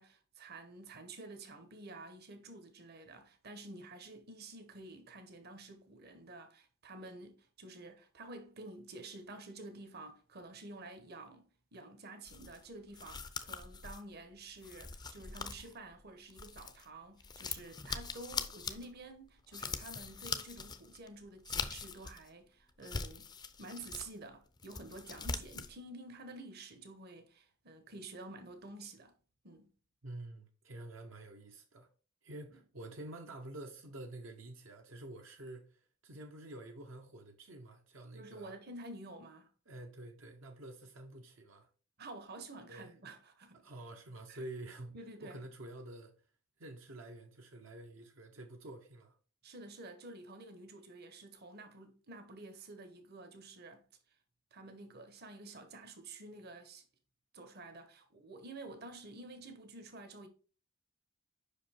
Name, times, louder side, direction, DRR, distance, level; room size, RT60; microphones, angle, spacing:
voice 1, 0.0-23.3 23.6-29.1 29.4-29.7 32.5-32.6 38.1-39.5 42.0-43.7 44.3-44.4 44.9-45.4 49.4-53.8 54.5-56.8 57.3-60.3, right 2 dB, 50° right, 1.0 m, -50 dB
sound 1, 12.2-16.9 17.2-22.3 22.7-24.1 24.5-25.7, left 5 dB, 20° left, 0.5 m, -42 dB
voice 2, 30.0-31.9 32.2-38.6 39.7-41.7 42.7-42.9 43.5-46.1 46.6-49.2, right 1 dB, 70° right, 0.9 m, -49 dB
5.4 x 5.1 x 4.3 m
head